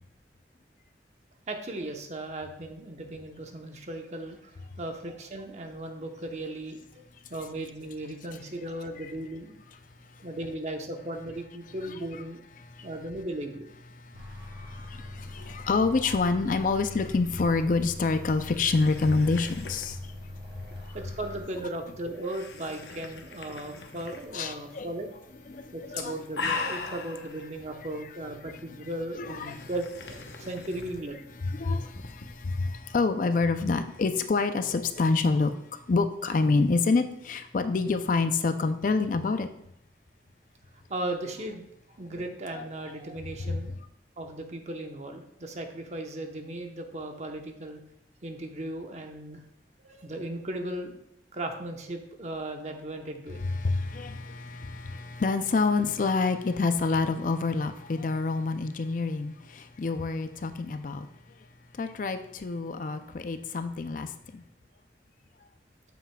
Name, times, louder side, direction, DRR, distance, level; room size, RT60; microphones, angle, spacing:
voice 1, 1.5-6.8 7.3-9.5 10.2-12.4 12.8-13.7 20.9-25.1 25.7-31.3 40.9-43.8 44.2-47.8 48.2-49.4 49.8-50.9 51.3-53.4, right 1 dB, 40° right, 0.9 m, -37 dB
voice 2, 11.8-12.2 12.7-12.9 14.0-20.1 24.3-24.9 25.5-26.2 29.2-29.7 30.3-30.5 31.4-35.6 35.9-39.5 42.5-42.6 43.4-43.5 53.4-61.1 61.7-64.4, left 3 dB, 50° left, 0.4 m, -27 dB
sound 1, 14.1-21.4, left 1 dB, 65° right, 3.1 m, -42 dB
sound 2, 16.5-32.8, left 4 dB, 75° left, 0.9 m, -42 dB
9.0 x 7.2 x 2.3 m
head